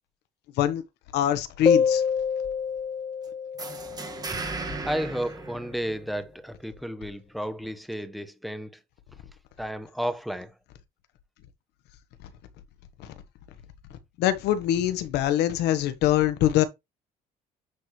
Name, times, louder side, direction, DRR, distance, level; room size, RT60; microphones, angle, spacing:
voice 1, 1.1-2.0 4.7-4.8 13.0-13.1 14.2-16.6, left 11 dB, 90° left, 1.2 m, -24 dB
sound 1, 1.7-4.9, left 6 dB, 25° left, 0.6 m, -27 dB
sound 2, 3.6-6.3, right 3 dB, 20° right, 1.8 m, -36 dB
voice 2, 4.8-8.8 9.6-10.5, equal, ahead, 1.2 m, -32 dB
10.0 x 4.4 x 3.2 m
cardioid pair, 110°, 17 cm